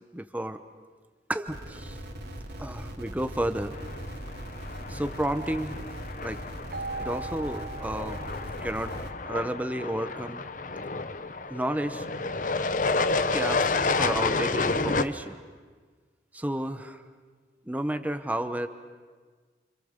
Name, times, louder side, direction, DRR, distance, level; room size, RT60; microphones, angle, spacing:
voice 1, 0.1-0.6 1.3-2.0 2.6-3.7 4.9-5.8 6.2-6.4 7.0-8.2 8.6-8.9 9.3-10.4 11.5-12.1 13.3-15.4 16.3-17.0 17.7-18.7, right 1 dB, 10° right, 9 dB, 1.0 m, -31 dB
sound 1, 1.5-9.1, equal, 70° right, 2.8 m, -40 dB
sound 2, 3.7-15.0, left 3 dB, 45° left, 0.9 m, -30 dB
Keyboard (musical), 6.7-9.3, right 3 dB, 55° right, 0.8 m, -40 dB
29.5 x 26.5 x 6.7 m, 1.5 s
head